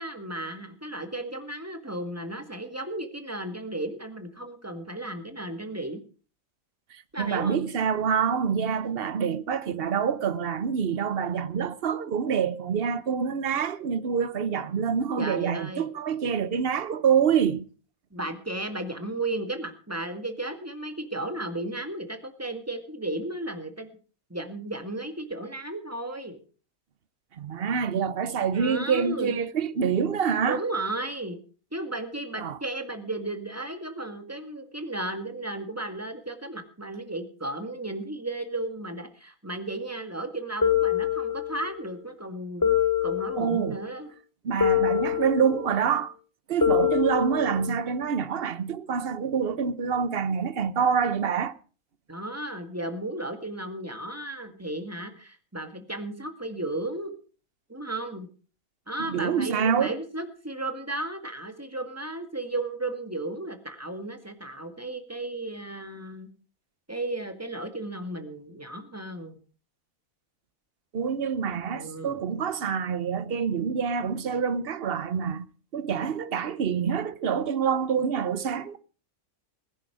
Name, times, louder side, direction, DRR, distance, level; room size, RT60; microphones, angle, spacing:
voice 1, 0.0-6.0 7.1-7.7 15.2-15.9 18.1-23.9 24.3-26.4 28.6-29.3 30.4-31.4 31.7-44.1 52.1-57.1 57.7-58.3 58.9-66.3 66.9-69.4 71.7-72.2, right 2 dB, 10° right, 1.9 m, -34 dB
voice 2, 6.9-17.7 27.4-30.6 32.4-32.6 43.4-43.8 44.4-46.1 46.5-51.5 59.1-59.9 70.9-75.5 75.7-78.8, right 7 dB, 45° right, 1.0 m, -26 dB
sound 1, 40.6-41.8 42.6-43.8 44.6-45.8 46.6-47.8, left 10 dB, 20° left, 0.5 m, -25 dB
20.5 x 10.5 x 4.9 m
omnidirectional pair, 1.5 m